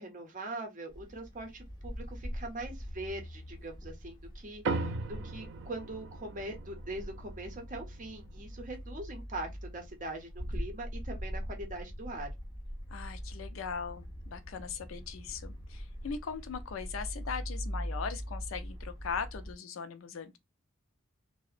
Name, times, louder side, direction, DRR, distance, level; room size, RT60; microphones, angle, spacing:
voice 1, 0.0-12.3, right 2 dB, 40° right, 0.7 m, -42 dB
sound 1, 0.9-19.5, equal, 20° left, 1.0 m, -42 dB
sound 2, 4.6-9.4, right 3 dB, 65° right, 0.4 m, -39 dB
voice 2, 12.9-20.4, left 6 dB, 75° left, 0.4 m, -39 dB
2.7 x 2.1 x 2.4 m
head